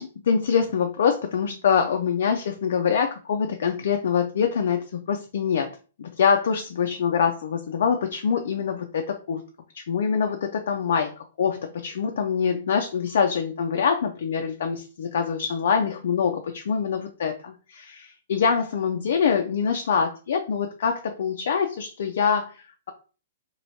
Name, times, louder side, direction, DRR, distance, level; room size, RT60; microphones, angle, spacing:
voice 1, 0.0-9.4 9.7-11.1 11.4-22.9, left 6 dB, 60° left, 5 dB, 0.3 m, -25 dB
3.0 x 2.6 x 2.7 m, 0.36 s
figure-of-eight pair, 115°, 0 cm